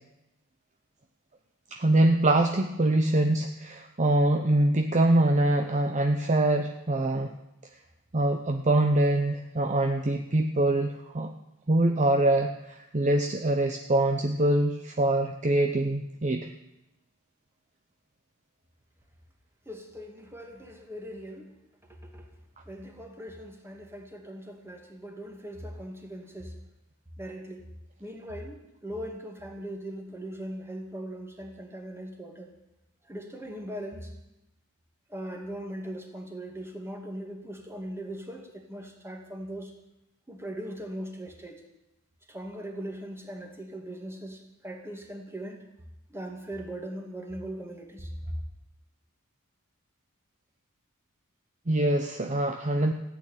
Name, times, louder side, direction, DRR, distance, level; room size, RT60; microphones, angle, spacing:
voice 1, 1.7-7.3 8.1-11.3 11.7-16.5 51.7-52.9, right 1 dB, 35° right, 5 dB, 0.8 m, -24 dB
voice 2, 19.7-21.5 21.9-22.3 22.7-26.6 27.2-27.7 28.0-32.5 33.0-34.1 35.1-39.7 40.3-41.6 42.3-45.7 46.1-48.3, right 1 dB, 10° right, 2 dB, 2.4 m, -40 dB
15.0 x 8.9 x 9.3 m, 0.89 s
head